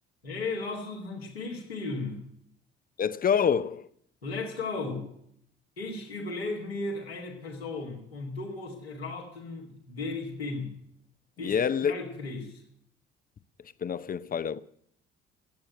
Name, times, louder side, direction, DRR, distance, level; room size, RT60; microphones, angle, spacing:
voice 1, 0.2-2.2 4.2-5.1 5.8-10.7 11.4-12.6, left 3 dB, 85° left, 2.4 m, -35 dB
voice 2, 3.0-3.9 11.4-11.9 13.8-14.6, left 7 dB, 30° left, 0.7 m, -27 dB
20.5 x 9.2 x 7.7 m
figure-of-eight pair, 45°, 30 cm